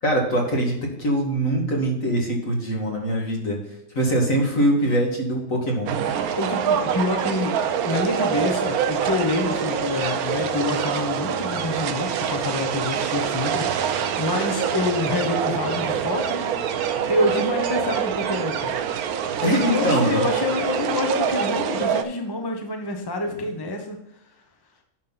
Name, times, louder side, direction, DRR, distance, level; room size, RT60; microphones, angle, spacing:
voice 1, 0.0-3.6 3.9-6.0 19.4-20.3, right 1 dB, 60° left, 0 dB, 2.5 m, -23 dB
sound 1, 5.9-22.0, right 8 dB, 80° right, 1.2 m, -25 dB
voice 2, 6.2-7.5 7.8-16.7 17.1-18.8 19.4-24.0, left 2 dB, 20° left, 3 dB, 1.0 m, -27 dB
10.0 x 6.0 x 4.0 m, 0.87 s
omnidirectional pair, 1.6 m